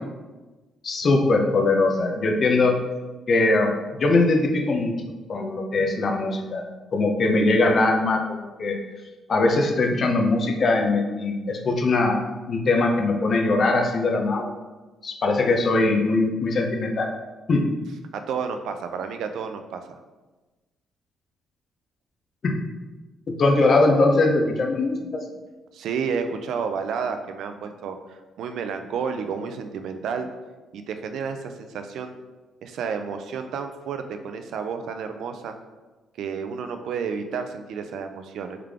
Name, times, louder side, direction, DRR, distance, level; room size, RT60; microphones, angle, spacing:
voice 1, 0.8-2.8 3.3-5.0 5.3-6.6 6.9-8.8 9.3-14.5 15.0-17.1 17.5-17.7 22.4-22.6 23.3-25.2, left 2 dB, 50° left, 3 dB, 0.6 m, -21 dB
voice 2, 18.1-19.9 25.7-30.3 30.7-32.1 32.6-35.5 36.2-38.6, right 6 dB, 75° right, 7 dB, 0.4 m, -31 dB
3.6 x 3.3 x 3.5 m, 1.2 s
cardioid pair, 90°, 0 cm